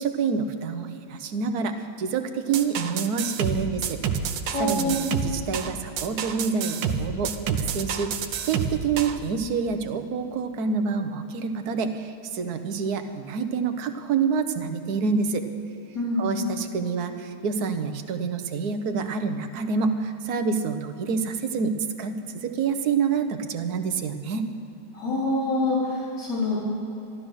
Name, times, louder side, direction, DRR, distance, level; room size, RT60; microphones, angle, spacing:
voice 1, 0.0-4.0 4.6-5.0 5.2-15.5 16.2-24.5, right 5 dB, 65° right, 8 dB, 1.4 m, -27 dB
sound 1, 2.5-9.2, right 7 dB, 85° right, 1.5 m, -29 dB
voice 2, 4.5-5.1 15.9-16.3 24.9-26.6, left 1 dB, 75° left, -7 dB, 4.4 m, -26 dB
14.0 x 12.5 x 6.3 m, 2.8 s
omnidirectional pair, 1.9 m